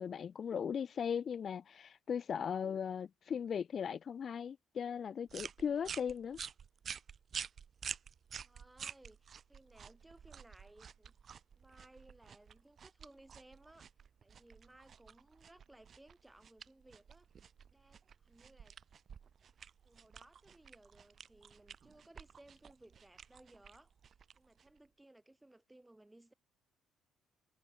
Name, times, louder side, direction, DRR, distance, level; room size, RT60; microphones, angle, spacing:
voice 1, 0.0-6.4, left 7 dB, 50° left, 0.4 m, -38 dB
sound 1, 5.3-24.9, right 7 dB, 50° right, 1.9 m, -50 dB
voice 2, 8.4-11.1 11.5-13.9 14.2-17.3 17.7-18.8 19.8-23.9 24.3-26.3, right 1 dB, 10° right, 4.1 m, -62 dB
cardioid pair, 85°, 0 cm